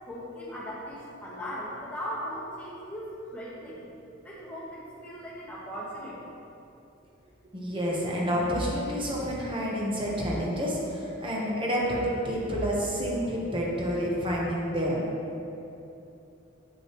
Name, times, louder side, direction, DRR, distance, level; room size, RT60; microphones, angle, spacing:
voice 1, 0.0-3.8 4.2-6.3, equal, 5° left, -8 dB, 1.5 m, -38 dB
voice 2, 7.5-15.1, equal, 25° right, -4 dB, 1.2 m, -29 dB
7.6 x 6.2 x 3.1 m, 2.8 s
head